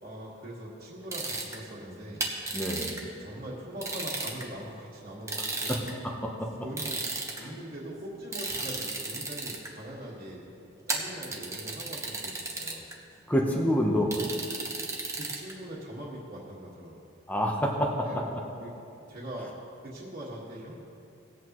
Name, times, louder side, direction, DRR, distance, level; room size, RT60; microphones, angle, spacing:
voice 1, 0.0-2.2 3.2-5.8 6.6-7.0 7.4-10.4 10.9-12.8 15.2-16.9 18.0-18.3 18.6-18.7 19.1-19.5 19.8-20.8, right 1 dB, 45° right, -7 dB, 1.7 m, -41 dB
sound 1, 1.1-1.6 2.2-3.0 3.8-4.4 5.3-5.9 6.8-7.4 8.3-9.7 10.9-12.9 14.1-15.5, right 3 dB, 15° right, 1.1 m, -33 dB
voice 2, 2.5-2.9 5.7-5.8 6.0-6.5 7.4-7.5 13.3-14.1 17.3-18.2, equal, 10° left, -1 dB, 0.9 m, -27 dB
18.5 x 8.2 x 3.1 m, 2.7 s
head